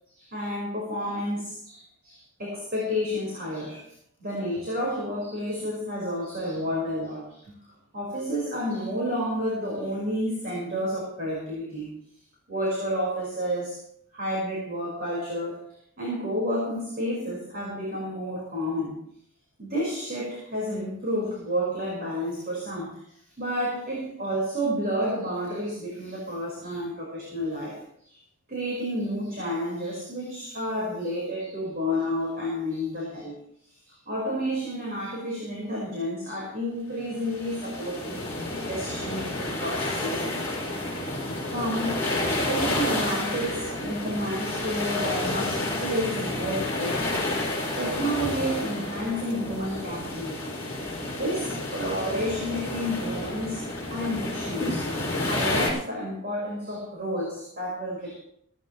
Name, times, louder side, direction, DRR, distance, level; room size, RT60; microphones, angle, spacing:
voice 1, 0.2-3.9 4.2-7.5 7.9-11.9 12.5-13.8 14.1-15.6 16.0-19.0 19.6-23.0 23.4-28.2 28.5-33.4 33.9-40.2 40.8-40.9 41.5-42.0 42.5-47.3 47.7-50.5 51.0-53.6 53.9-54.9 55.2-58.2, equal, 45° right, -3 dB, 5.1 m, -30 dB
sound 1, 37.1-55.7, left 2 dB, 10° left, 5.5 m, -30 dB
17.0 x 16.5 x 3.2 m, 0.66 s
head